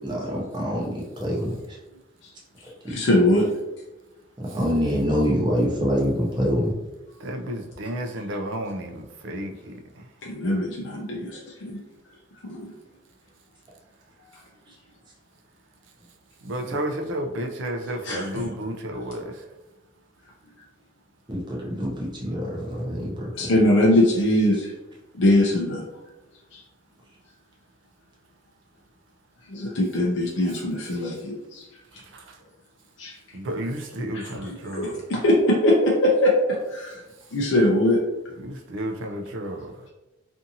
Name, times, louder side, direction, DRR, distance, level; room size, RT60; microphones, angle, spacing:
voice 1, 0.0-1.8 2.8-2.9 4.5-6.7 21.3-23.5, equal, 20° right, -4 dB, 0.6 m, -25 dB
voice 2, 2.9-3.5 10.3-11.8 12.4-12.7 18.0-18.3 23.3-24.7 25.2-25.8 26.5-26.6 29.5-31.6 33.0-33.1 34.1-34.3 34.7-37.0 37.3-38.0, left 1 dB, 60° left, -3 dB, 0.5 m, -21 dB
voice 3, 7.2-9.7 16.4-19.4 32.1-32.4 33.3-35.0 38.4-39.7, right 1 dB, 65° right, 4 dB, 0.4 m, -32 dB
2.6 x 2.5 x 2.6 m, 1.0 s
head